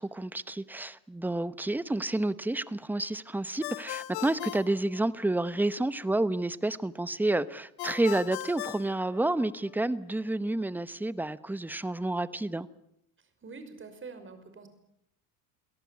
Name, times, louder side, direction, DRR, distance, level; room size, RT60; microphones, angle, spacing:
voice 1, 0.0-12.7, right 2 dB, 5° right, 1.0 m, -30 dB
Ringtone, 3.6-5.6 7.8-9.7, left 18 dB, 70° left, 1.0 m, -39 dB
voice 2, 13.2-14.7, right 4 dB, 30° right, 5.8 m, -46 dB
27.5 x 18.0 x 8.6 m
cardioid pair, 115°, 39 cm